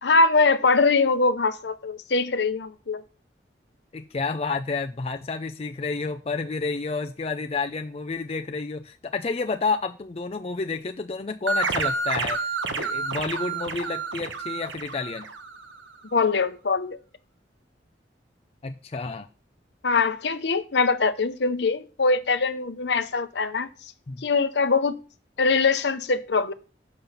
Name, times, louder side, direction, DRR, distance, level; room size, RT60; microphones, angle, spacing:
voice 1, 0.0-3.0 16.1-17.0 19.8-23.7 24.2-25.0 25.4-26.5, left 4 dB, 70° left, 11 dB, 0.7 m, -22 dB
voice 2, 3.9-15.3 18.6-19.3 24.1-24.3, left 4 dB, 30° left, 6 dB, 0.4 m, -30 dB
sound 1, 11.5-15.8, right 4 dB, 85° right, 1.0 m, -29 dB
7.1 x 5.4 x 5.7 m, 0.37 s
head